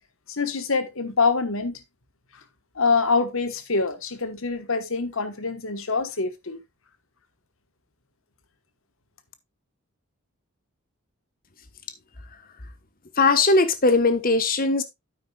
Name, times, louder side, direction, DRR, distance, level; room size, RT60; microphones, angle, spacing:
voice 1, 0.3-1.8 2.7-6.6, left 4 dB, 65° left, 1.3 m, -25 dB
voice 2, 13.2-14.8, left 3 dB, 40° left, 1.1 m, -19 dB
9.4 x 9.0 x 2.3 m
head